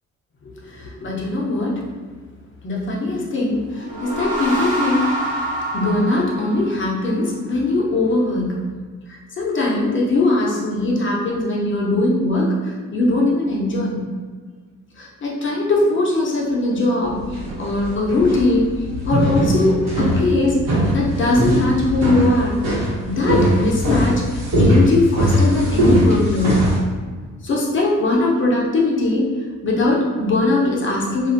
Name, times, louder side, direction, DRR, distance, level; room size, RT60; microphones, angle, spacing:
voice 1, 0.4-1.8 2.6-5.1 5.7-8.6 9.1-14.0 15.0-17.3 17.6-18.7 19.0-26.6 27.4-29.3 29.6-31.3, left 2 dB, 40° left, -3 dB, 0.7 m, -20 dB
sound 1, 3.7-7.2, right 1 dB, 25° right, 1.0 m, -26 dB
sound 2, 17.1-26.8, equal, 65° right, 1.1 m, -20 dB
2.5 x 2.3 x 2.6 m, 1.5 s
cardioid pair, 90°, 30 cm